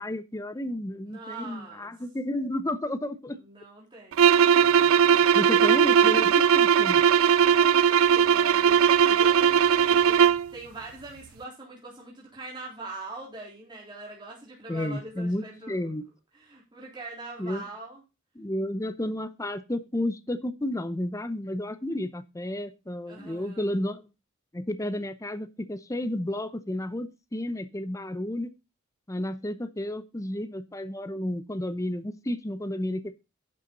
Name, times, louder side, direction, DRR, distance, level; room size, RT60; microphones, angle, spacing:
voice 1, 0.0-3.4 5.0-7.0 14.7-16.0 17.4-17.6 18.4-24.1 24.5-28.5 29.1-33.1, left 1 dB, 15° left, 0.7 m, -32 dB
voice 2, 1.0-1.9 3.3-5.8 7.2-15.9 16.3-18.0 23.1-23.7, right 2 dB, 20° right, 3.7 m, -43 dB
sound 1, 4.1-10.5, right 7 dB, 80° right, 0.4 m, -19 dB
11.0 x 7.0 x 3.9 m
head